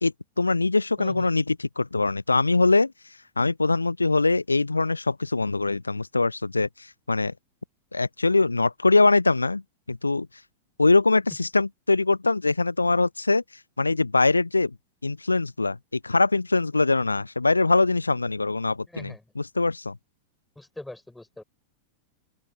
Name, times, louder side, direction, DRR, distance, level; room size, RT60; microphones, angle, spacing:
voice 1, 0.0-2.9 3.4-7.3 7.9-9.6 9.9-10.3 10.8-13.4 13.8-14.7 15.0-20.0, left 3 dB, 80° left, 0.4 m, -23 dB
voice 2, 1.0-1.3 18.9-19.2 20.6-21.4, left 2 dB, 5° left, 3.9 m, -42 dB
open air
figure-of-eight pair, 90°, 0 cm